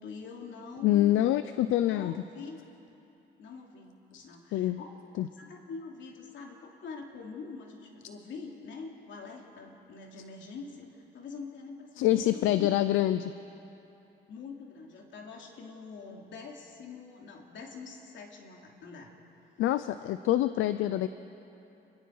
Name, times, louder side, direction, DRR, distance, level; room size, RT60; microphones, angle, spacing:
voice 1, 0.0-1.4 1.9-2.6 3.4-4.9 5.3-13.0 14.3-19.1, left 4 dB, 70° left, 1 dB, 2.9 m, -44 dB
voice 2, 0.8-2.1 4.1-4.3 4.5-4.8 5.2-5.3 12.0-13.3 19.6-21.1, left 13 dB, 90° left, 12 dB, 0.6 m, -26 dB
28.5 x 21.5 x 4.8 m, 2.8 s
cardioid pair, 90°, 20 cm